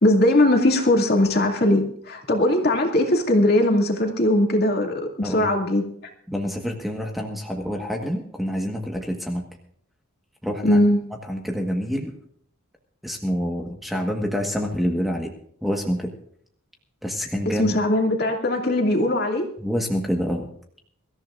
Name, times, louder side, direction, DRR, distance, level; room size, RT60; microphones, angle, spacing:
voice 1, 0.0-5.8 10.6-11.0 17.5-19.5, left 1 dB, 45° left, 2 dB, 2.4 m, -20 dB
voice 2, 6.3-9.4 10.4-10.8 11.3-12.1 13.0-15.3 15.6-16.1 17.0-17.8 19.6-20.5, equal, ahead, 1 dB, 1.4 m, -27 dB
23.5 x 14.5 x 2.5 m, 0.64 s
head